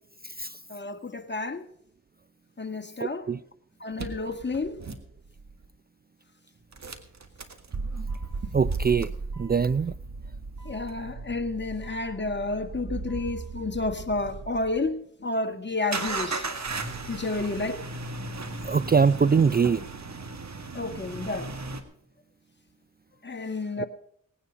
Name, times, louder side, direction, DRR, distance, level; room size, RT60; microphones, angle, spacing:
voice 1, 0.7-1.6 2.6-3.2 3.8-4.8 10.6-15.0 15.2-16.5 17.1-17.8 20.7-21.5 23.2-23.9, left 3 dB, 35° left, 1.7 m, -30 dB
voice 2, 3.0-3.4 8.5-10.0 18.6-19.8 23.8-23.9, right 5 dB, 30° right, 0.4 m, -23 dB
sound 1, 4.0-5.7 6.7-14.9 15.9-21.8, right 3 dB, 55° right, 1.9 m, -36 dB
18.5 x 9.8 x 5.0 m
cardioid pair, 55°, 32 cm